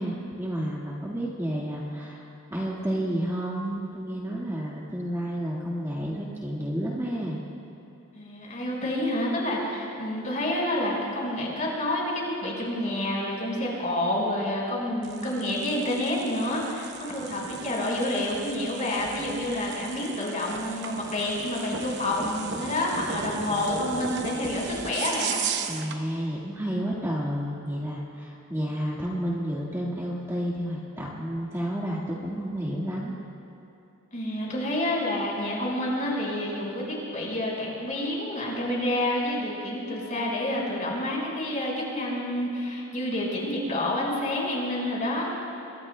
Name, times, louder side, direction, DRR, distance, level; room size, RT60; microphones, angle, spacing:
voice 1, 0.0-7.4 25.7-33.1, equal, 15° right, -5 dB, 1.7 m, -31 dB
voice 2, 8.1-25.4 34.1-45.3, left 1 dB, 35° left, -3 dB, 4.8 m, -28 dB
sound 1, 15.0-26.0, right 6 dB, 50° right, 0.8 m, -36 dB
27.0 x 23.0 x 2.2 m, 2.9 s
head